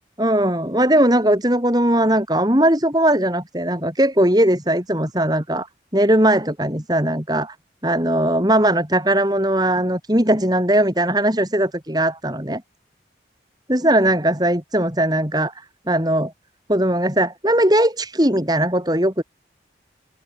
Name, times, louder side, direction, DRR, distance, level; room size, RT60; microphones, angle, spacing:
voice 1, 0.2-5.7 5.9-7.6 7.8-12.6 13.7-15.5 15.9-16.3 16.7-19.2, right 1 dB, 20° right, 5.2 m, -19 dB
open air
head